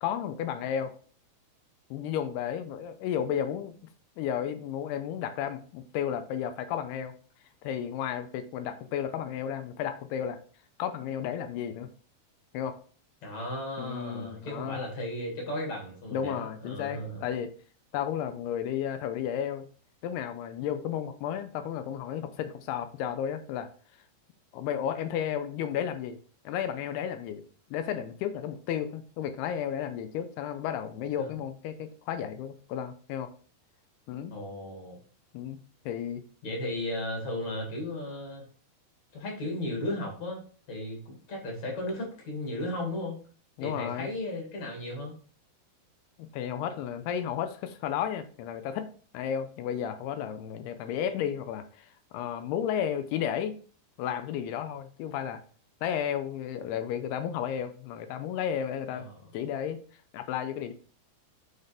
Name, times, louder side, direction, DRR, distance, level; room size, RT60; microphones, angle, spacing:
voice 1, 0.0-0.9 1.9-3.7 4.2-7.1 7.6-10.4 10.8-11.9 12.5-12.8 13.8-14.8 16.1-17.5 17.9-19.7 20.0-23.7 24.5-26.2 26.5-27.4 27.7-33.3 34.1-34.3 35.3-35.6 35.9-36.2 43.6-44.1 46.2-48.9 49.1-53.6 54.0-55.4 55.8-59.1 59.3-59.8 60.1-60.7, left 9 dB, 90° left, 9 dB, 2.8 m, -33 dB
voice 2, 13.2-17.3 31.2-31.3 34.3-35.0 36.4-38.4 39.1-43.1 43.6-45.1 58.9-59.1, left 1 dB, 50° left, -1 dB, 3.2 m, -35 dB
9.4 x 4.0 x 3.4 m, 0.41 s
omnidirectional pair, 4.5 m